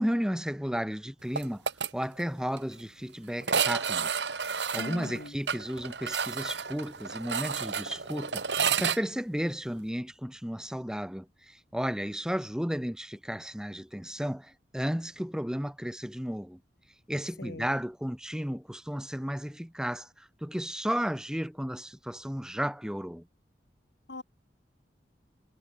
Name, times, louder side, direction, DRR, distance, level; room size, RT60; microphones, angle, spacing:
voice 1, 0.0-1.7 1.9-4.1 4.5-16.6 17.1-23.3, equal, 5° right, 1.0 m, -33 dB
sound 1, 1.4-1.9 2.2-2.3 2.6-2.7 3.4-9.0, right 6 dB, 85° right, 2.4 m, -31 dB
voice 2, 4.7-5.4 17.4-17.7 24.1-24.2, left 2 dB, 80° left, 2.1 m, -40 dB
head